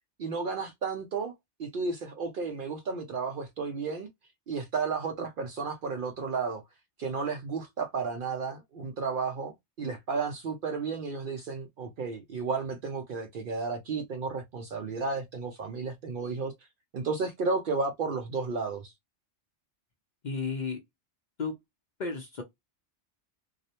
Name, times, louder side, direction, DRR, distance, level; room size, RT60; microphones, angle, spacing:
voice 1, 0.2-1.3 1.6-4.1 4.5-6.6 7.0-16.5 16.9-18.9, right 4 dB, 60° right, 0.6 m, -33 dB
voice 2, 20.2-20.8 21.4-21.5 22.0-22.4, left 4 dB, 50° left, 0.6 m, -32 dB
2.4 x 2.0 x 2.7 m
omnidirectional pair, 1.2 m